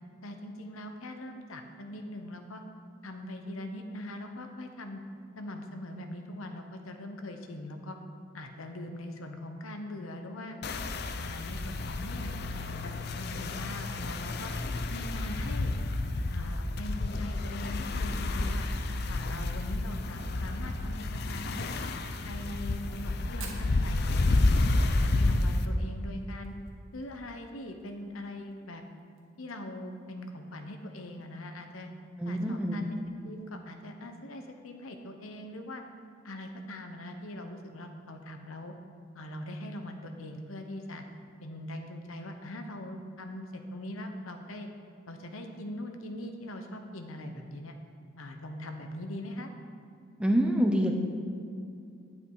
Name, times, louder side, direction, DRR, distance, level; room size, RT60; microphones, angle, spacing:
voice 1, 0.2-2.6 3.0-5.0 5.4-8.0 8.3-10.6 11.2-14.5 14.9-15.7 16.3-18.7 19.1-21.7 22.2-24.4 24.8-26.6 26.9-28.8 29.4-31.9 32.2-32.9 33.2-35.8 36.2-38.7 39.1-41.0 41.4-44.7 45.1-47.8 48.2-49.5, left 1 dB, 85° left, 5 dB, 1.0 m, -41 dB
sound 1, 10.6-25.7, left 2 dB, 50° left, 0.5 m, -30 dB
Fire, 23.4-27.9 28.1-28.2 28.5-28.6 29.0-29.4 29.9-30.0 31.1-31.2, right 5 dB, 75° right, 1.7 m, -49 dB
voice 2, 32.2-32.9 50.2-50.9, equal, 5° right, 2 dB, 0.8 m, -26 dB
10.5 x 8.7 x 4.8 m, 2.6 s
head